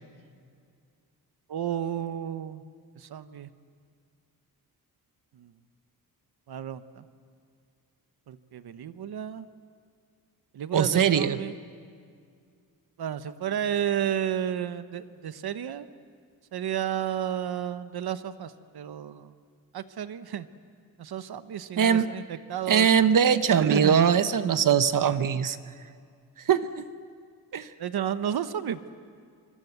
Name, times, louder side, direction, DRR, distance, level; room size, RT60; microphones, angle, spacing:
voice 1, 1.5-2.6 3.0-3.5 5.3-5.5 6.5-7.0 8.3-9.4 10.5-11.6 13.0-15.9 16.5-19.3 19.7-20.5 21.0-22.9 23.5-24.1 27.8-28.8, right 9 dB, 85° right, 12 dB, 1.1 m, -32 dB
voice 2, 10.7-11.4 21.8-22.1 22.7-25.6 26.5-26.6 27.5-27.7, right 7 dB, 60° right, 12 dB, 0.9 m, -21 dB
24.5 x 24.5 x 8.2 m, 2.2 s
wide cardioid pair, 160°, 37 cm